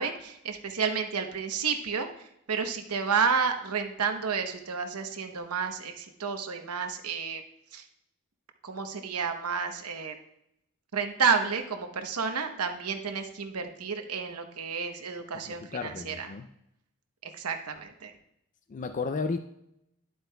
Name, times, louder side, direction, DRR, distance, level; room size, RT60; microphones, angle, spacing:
voice 1, 0.0-2.1 2.5-7.4 7.7-7.8 8.6-10.1 10.9-16.3 17.2-18.1, right 5 dB, 90° right, 6 dB, 0.9 m, -30 dB
voice 2, 15.5-16.5 18.7-19.4, left 4 dB, 35° left, 8 dB, 0.3 m, -33 dB
11.0 x 7.8 x 2.2 m, 0.80 s
head